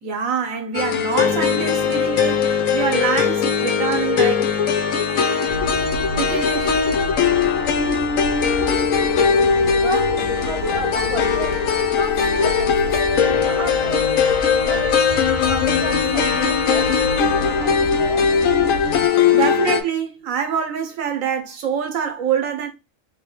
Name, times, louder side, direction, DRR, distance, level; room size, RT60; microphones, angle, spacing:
voice 1, 0.0-4.5 6.2-7.0 19.3-22.7, right 7 dB, 90° right, 1.3 m, -25 dB
sound 1, 0.7-19.8, left 6 dB, 85° left, 1.1 m, -19 dB
sound 2, 5.5-19.1, left 3 dB, 60° left, 0.6 m, -32 dB
voice 2, 9.8-14.3 14.5-18.3, right 3 dB, 30° right, 0.7 m, -33 dB
3.8 x 2.9 x 3.2 m
omnidirectional pair, 1.4 m